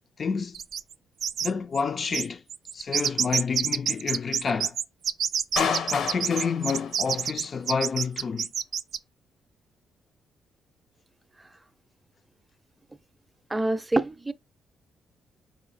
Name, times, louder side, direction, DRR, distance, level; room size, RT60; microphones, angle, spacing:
voice 1, 0.2-0.6 1.4-2.4 2.7-4.8 5.6-8.5, left 5 dB, 45° left, 0.3 m, -29 dB
sound 1, 0.5-0.9 1.2-1.5 1.7-1.8 2.1-9.0, right 8 dB, 65° right, 0.4 m, -27 dB
Clapping, 5.6-7.6, left 6 dB, 70° left, 0.8 m, -31 dB
voice 2, 13.5-14.3, right 2 dB, 15° right, 0.5 m, -26 dB
4.9 x 2.5 x 4.0 m
cardioid pair, 80°, 0 cm